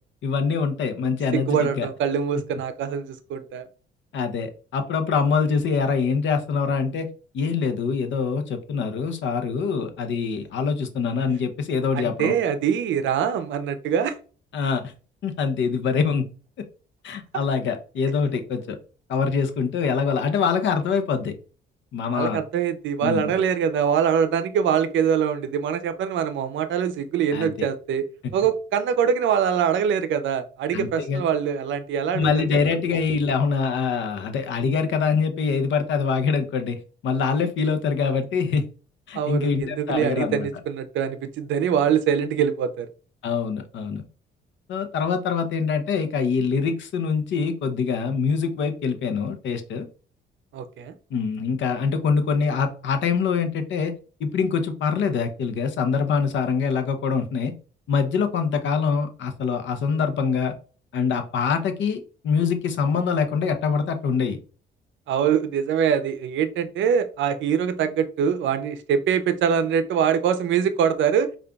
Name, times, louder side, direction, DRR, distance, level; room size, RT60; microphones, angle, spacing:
voice 1, 0.2-1.9 4.1-7.1 7.3-12.3 14.5-14.9 15.2-16.3 17.0-18.8 19.1-21.3 21.9-22.4 23.0-23.3 27.3-27.5 30.7-31.2 32.1-38.6 39.1-40.5 43.2-44.0 44.7-49.9 51.1-53.9 54.2-57.5 57.9-60.5 60.9-64.4, left 5 dB, 70° left, 8 dB, 0.7 m, -24 dB
voice 2, 1.3-3.7 11.9-14.1 22.1-28.0 28.3-32.6 39.1-42.9 50.5-51.0 65.1-71.3, right 8 dB, 70° right, 10 dB, 0.5 m, -23 dB
5.0 x 2.4 x 2.3 m, 0.38 s
cardioid pair, 90°, 20 cm